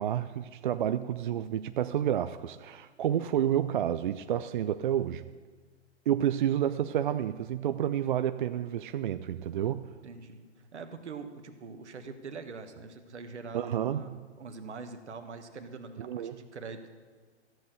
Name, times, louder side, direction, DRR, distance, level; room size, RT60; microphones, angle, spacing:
voice 1, 0.0-5.2 6.1-9.8 13.5-14.2 16.0-16.4, right 10 dB, 45° right, 10 dB, 0.4 m, -30 dB
voice 2, 10.0-16.9, right 4 dB, 75° right, 7 dB, 1.5 m, -44 dB
13.5 x 7.9 x 6.6 m, 1.4 s
hypercardioid pair, 135°, 35 cm